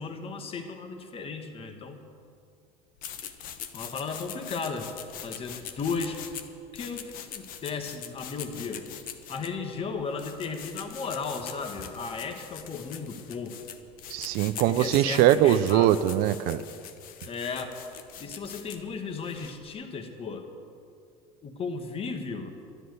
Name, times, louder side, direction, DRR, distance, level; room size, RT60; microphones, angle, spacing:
voice 1, 0.0-2.0 3.7-4.9 5.2-6.2 6.7-8.9 9.3-13.6 14.7-16.0 17.3-17.7 18.2-20.5 21.4-22.5, left 4 dB, 35° left, 6 dB, 1.5 m, -35 dB
sound 1, 3.0-19.7, left 9 dB, 55° left, 1.1 m, -43 dB
voice 2, 14.1-16.6, right 12 dB, 60° right, 11 dB, 0.6 m, -22 dB
12.5 x 10.5 x 8.0 m, 2.4 s
supercardioid pair, 105°, 17 cm